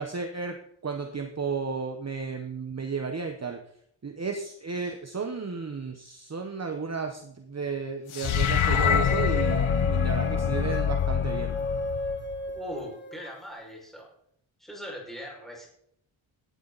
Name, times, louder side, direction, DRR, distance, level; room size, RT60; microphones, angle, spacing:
voice 1, 0.0-3.6 4.0-11.5, right 5 dB, 30° right, 5 dB, 1.1 m, -33 dB
sound 1, 8.1-12.5, left 8 dB, 75° left, 1.1 m, -25 dB
sound 2, 8.9-13.4, left 1 dB, 20° left, 2.1 m, -34 dB
voice 2, 12.5-14.0 14.6-15.7, equal, ahead, -2 dB, 5.9 m, -40 dB
17.5 x 12.5 x 4.1 m, 0.70 s
wide cardioid pair, 175°, 49 cm